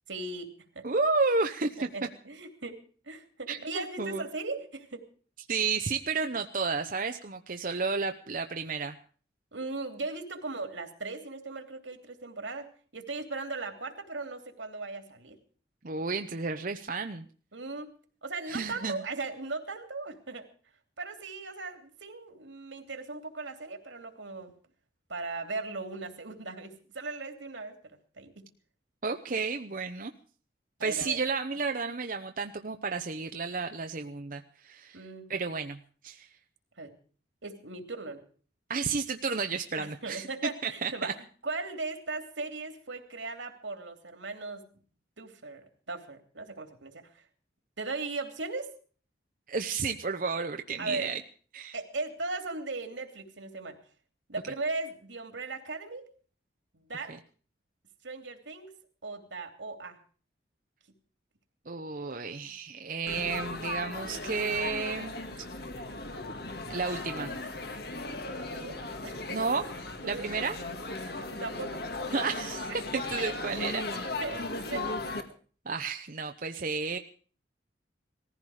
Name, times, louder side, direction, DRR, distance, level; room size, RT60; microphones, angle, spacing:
voice 1, 0.1-0.9 1.9-5.0 9.5-15.4 17.5-17.9 18.2-20.5 21.0-24.5 25.1-27.8 28.2-28.5 30.8-31.2 34.9-35.3 36.8-36.9 37.4-38.2 39.8-44.7 45.2-47.2 47.8-48.7 50.8-51.1 51.7-53.8 54.3-56.1 56.7-57.1 58.0-58.7 59.0-60.0 62.1-62.5 68.4-69.5 70.0-70.3 71.2-71.8 72.9-75.3, right 3 dB, 85° right, 6 dB, 2.9 m, -38 dB
voice 2, 0.8-1.9 3.5-4.2 5.5-9.0 15.8-17.3 18.5-19.0 29.0-30.1 30.8-35.0 35.3-36.3 38.7-40.3 40.6-41.1 49.5-51.2 51.5-51.8 61.7-65.1 66.7-67.3 69.3-69.7 70.1-70.6 72.1-73.8 75.7-77.0, right 4 dB, 45° right, 6 dB, 0.8 m, -32 dB
Laughter / Chatter / Crowd, 63.1-75.2, left 2 dB, 55° left, 1.9 m, -37 dB
19.5 x 15.0 x 4.9 m, 0.43 s
head